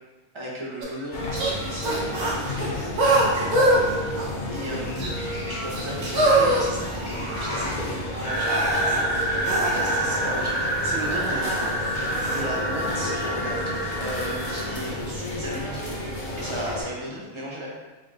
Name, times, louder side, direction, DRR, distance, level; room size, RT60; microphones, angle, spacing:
voice 1, 0.3-2.9 3.2-9.0 9.7-11.5 12.3-15.9 16.3-17.7, right 1 dB, 25° right, -5 dB, 0.7 m, -35 dB
sound 1, 0.8-0.9 1.4-1.5 1.8-3.8 4.2-4.6 5.0-5.1 5.7-7.8 8.2-9.0 9.5-11.7 12.1-12.4, right 1 dB, 80° right, 1.3 m, -25 dB
sound 2, 1.1-16.8, left 1 dB, 45° left, 0.6 m, -32 dB
sound 3, 8.2-14.7, right 1 dB, 75° left, 1.3 m, -27 dB
3.9 x 3.8 x 2.4 m, 1.2 s
omnidirectional pair, 1.5 m